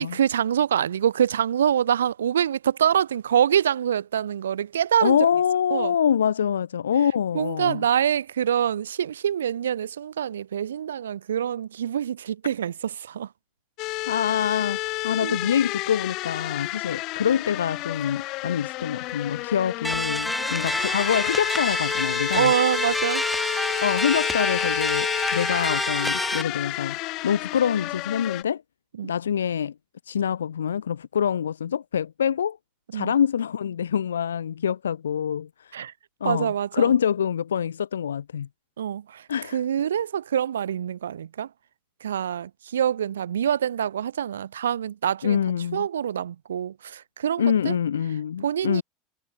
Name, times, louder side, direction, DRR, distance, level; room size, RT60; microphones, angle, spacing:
voice 1, 0.0-5.2 5.7-5.9 7.3-13.3 15.2-15.5 22.3-23.3 28.9-29.1 32.9-33.1 35.7-35.9 36.2-36.9 38.8-39.3 39.5-41.5 42.0-45.4 45.7-47.8 48.4-48.8, right 9 dB, 80° right, 0.4 m, -25 dB
voice 2, 5.0-7.8 14.1-22.5 23.8-27.0 27.2-28.6 29.0-29.7 30.1-32.6 32.9-35.8 36.2-38.5 39.3-39.6 45.2-45.9 47.4-48.8, left 8 dB, 85° left, 0.4 m, -25 dB
sound 1, 13.8-28.4, left 20 dB, 55° left, 2.5 m, -31 dB
sound 2, 19.8-26.4, left 1 dB, 5° left, 0.4 m, -27 dB
hypercardioid pair, 80°, 0 cm